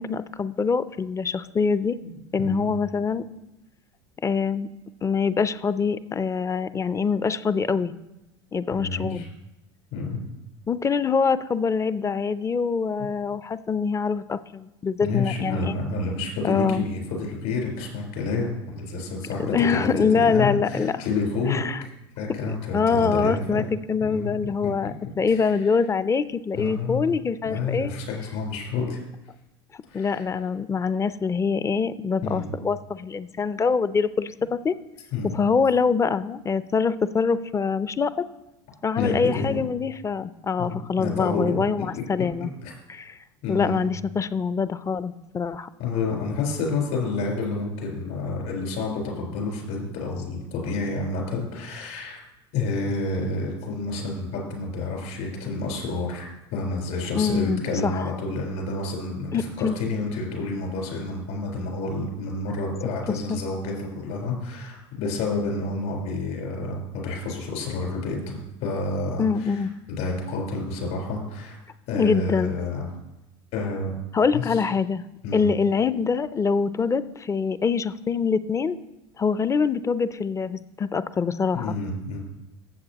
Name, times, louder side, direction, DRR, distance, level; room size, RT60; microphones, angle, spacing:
voice 1, 0.0-2.0 2.3-3.2 4.2-4.7 5.0-7.9 8.5-9.3 10.7-15.8 16.4-16.9 19.5-21.0 21.5-21.8 22.3-22.4 22.7-27.9 29.9-34.7 35.3-38.2 38.8-42.5 42.9-43.2 43.5-45.7 57.1-58.0 59.3-59.7 63.3-63.4 69.2-69.7 71.9-72.6 74.1-75.0 75.3-78.8 79.2-81.8, left 5 dB, 20° left, 16 dB, 0.5 m, -24 dB
voice 2, 8.7-9.3 9.9-10.2 15.0-21.6 22.2-23.7 24.0-24.3 24.6-24.7 25.3-25.6 26.5-27.0 27.4-29.0 29.9-30.3 32.2-32.5 35.1-35.3 39.0-39.6 40.6-41.6 41.9-42.0 42.4-42.7 43.4-43.8 45.8-52.2 52.5-69.7 70.0-71.6 71.9-72.9 73.5-73.9 74.3-74.6 75.2-75.5 81.5-82.2, left 3 dB, 65° left, -1 dB, 4.3 m, -29 dB
15.0 x 7.7 x 2.9 m, 0.93 s
hypercardioid pair, 80°, 14 cm